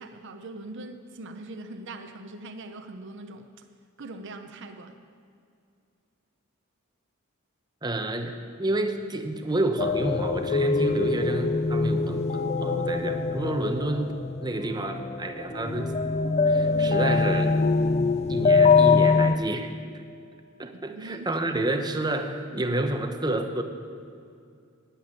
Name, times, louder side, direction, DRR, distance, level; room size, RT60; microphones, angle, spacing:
voice 1, 0.0-3.5 4.0-5.0 20.8-21.3, right 2 dB, 55° right, 6 dB, 0.7 m, -41 dB
voice 2, 7.8-15.9 16.5-17.6 18.3-20.0 20.6-23.6, right 1 dB, 20° right, 6 dB, 0.8 m, -29 dB
sound 1, 9.8-19.3, left 4 dB, 30° left, 0.3 m, -23 dB
9.9 x 8.6 x 8.8 m, 2.4 s
head